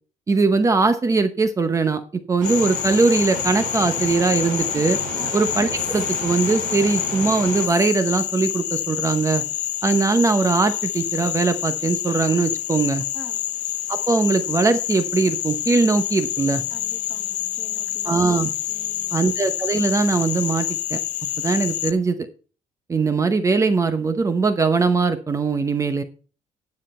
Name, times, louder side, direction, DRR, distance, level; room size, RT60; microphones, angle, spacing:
voice 1, 0.3-5.0 5.3-9.4 9.8-13.0 13.9-16.6 18.0-18.5 19.1-21.0 21.4-22.2 22.9-26.0, right 4 dB, 25° right, 10 dB, 0.9 m, -21 dB
Frog, 2.4-21.9, left 13 dB, 65° left, 0.5 m, -27 dB
sound 1, 2.4-7.7, right 4 dB, 85° right, 3.8 m, -33 dB
voice 2, 13.1-13.5 16.7-18.2 18.7-19.3, equal, 5° right, 4 dB, 2.1 m, -44 dB
10.0 x 7.4 x 4.3 m, 0.38 s
cardioid pair, 140°, 14 cm